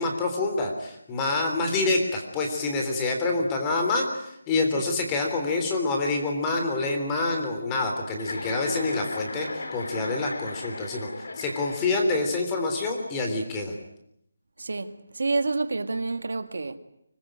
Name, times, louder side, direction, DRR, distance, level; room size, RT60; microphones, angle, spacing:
voice 1, 0.0-11.1 11.3-13.7, left 3 dB, 15° left, 3.5 m, -27 dB
Chuckle chortle, 8.1-12.2, left 2 dB, 75° left, 5.1 m, -35 dB
voice 2, 14.6-16.8, right 3 dB, 75° right, 2.0 m, -28 dB
25.0 x 21.0 x 9.1 m
hypercardioid pair, 175°, 0 cm